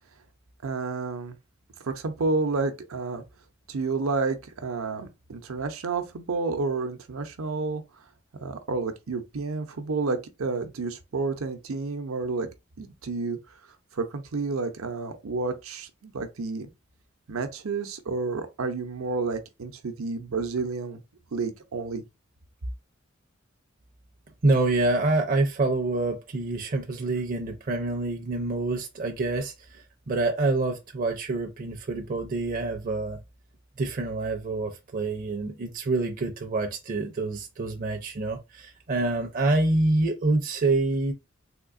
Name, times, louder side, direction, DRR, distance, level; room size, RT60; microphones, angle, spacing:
voice 1, 0.6-1.4 1.8-3.2 3.7-7.8 8.4-12.5 12.8-13.4 13.9-16.7 17.3-21.0 21.3-22.0, right 4 dB, 85° right, 0.7 m, -30 dB
voice 2, 24.4-33.2 33.8-41.1, right 2 dB, 40° right, 0.5 m, -26 dB
3.6 x 2.7 x 2.4 m
head